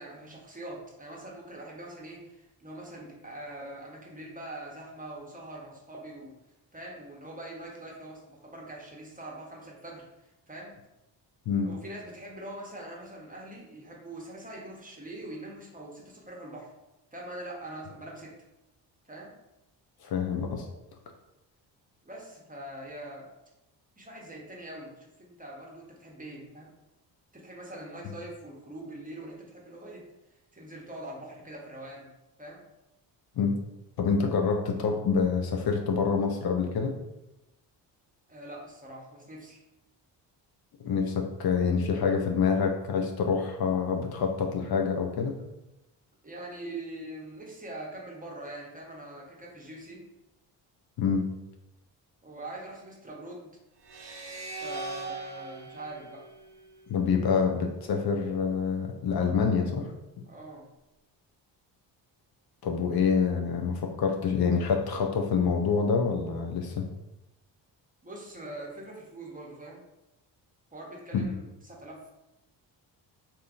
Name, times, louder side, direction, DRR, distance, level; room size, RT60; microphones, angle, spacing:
voice 1, 0.0-6.3 6.7-10.7 11.6-16.7 17.1-18.4 19.1-19.3 22.0-23.3 24.0-26.7 27.3-30.0 30.5-32.1 32.4-32.6 38.3-39.6 46.2-50.0 52.2-53.5 54.6-56.3 60.3-60.7 68.0-69.8 70.7-72.1, right 1 dB, 20° right, -2 dB, 0.8 m, -43 dB
voice 2, 20.0-20.7 33.4-33.5 34.0-37.0 40.8-45.4 51.0-51.3 56.9-60.2 62.6-66.9 71.1-71.3, left 5 dB, 55° left, 2 dB, 0.5 m, -27 dB
sound 1, 53.8-57.1, right 3 dB, 60° right, 0.7 m, -40 dB
3.4 x 2.8 x 2.5 m, 0.94 s
supercardioid pair, 65°, 46 cm